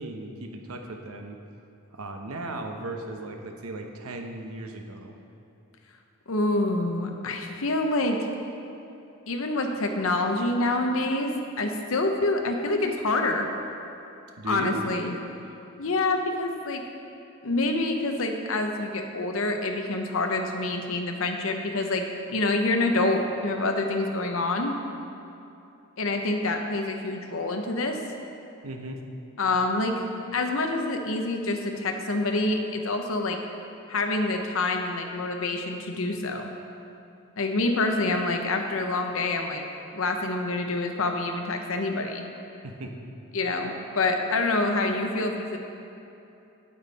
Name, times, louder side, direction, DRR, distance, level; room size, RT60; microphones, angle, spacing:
voice 1, 0.0-1.4 1.9-5.1 14.4-14.8 28.6-29.0 42.6-43.0, right 2 dB, 75° right, 4 dB, 0.8 m, -36 dB
voice 2, 6.3-8.3 9.3-13.5 14.4-15.1 15.8-16.9 17.4-24.7 26.0-28.0 29.4-30.0 30.3-33.4 33.9-36.5 37.4-39.6 39.9-42.2 43.3-45.6, left 2 dB, 65° left, 4 dB, 0.8 m, -27 dB
8.8 x 8.7 x 4.1 m, 2.8 s
head